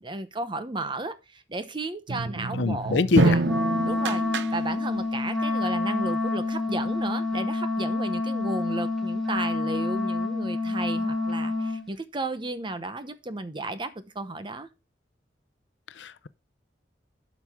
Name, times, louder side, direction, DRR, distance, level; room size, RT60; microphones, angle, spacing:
voice 1, 0.0-3.4 3.9-4.2 4.5-14.7, right 2 dB, 25° right, 0.8 m, -34 dB
sound 1, 2.1-5.1, right 3 dB, 75° right, 0.7 m, -27 dB
voice 2, 2.5-3.4 15.9-16.3, left 3 dB, 85° left, 0.6 m, -24 dB
Wind instrument woodwind instrument, 3.4-11.8, left 3 dB, ahead, 1.4 m, -28 dB
11.5 x 6.2 x 3.6 m
head